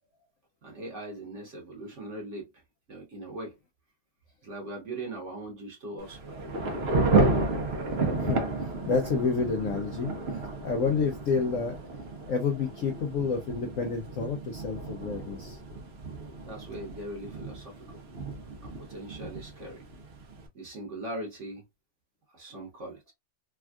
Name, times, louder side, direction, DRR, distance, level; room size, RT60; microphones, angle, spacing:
voice 1, 0.6-2.6 2.9-3.5 4.4-6.4 16.5-18.0 18.6-19.8 20.5-21.6 22.3-23.1, right 1 dB, 45° right, 1.2 m, -40 dB
Thunder / Rain, 6.0-20.5, right 3 dB, 70° right, 0.6 m, -32 dB
voice 2, 8.1-11.8 12.3-15.6, left 5 dB, 70° left, 0.7 m, -29 dB
3.4 x 2.3 x 2.3 m
omnidirectional pair, 1.9 m